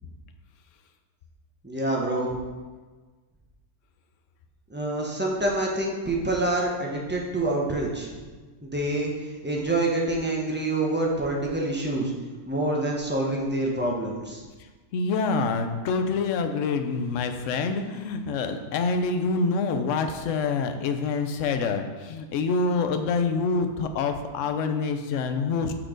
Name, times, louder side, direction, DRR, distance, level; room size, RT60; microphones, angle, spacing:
voice 1, 1.6-2.4 4.7-8.2 8.6-12.1 12.5-14.4, right 2 dB, 10° right, -2 dB, 0.8 m, -27 dB
voice 2, 14.9-25.7, left 4 dB, 65° left, 7 dB, 0.9 m, -26 dB
6.3 x 4.6 x 5.1 m, 1.3 s
omnidirectional pair, 1.6 m